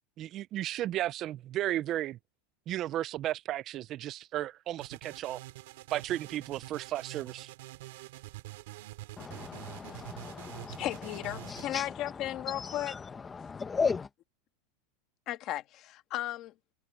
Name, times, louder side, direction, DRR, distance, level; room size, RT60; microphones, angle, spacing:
voice 1, 0.2-2.2 2.7-5.4 5.9-7.5, right 13 dB, 25° right, 0.3 m, -34 dB
sound 1, 4.8-11.7, right 18 dB, 60° right, 2.7 m, -46 dB
voice 2, 9.2-14.1, left 5 dB, 10° left, 0.9 m, -36 dB
voice 3, 10.8-12.9 15.3-16.5, left 14 dB, 30° left, 1.6 m, -35 dB
supercardioid pair, 175°, 0 cm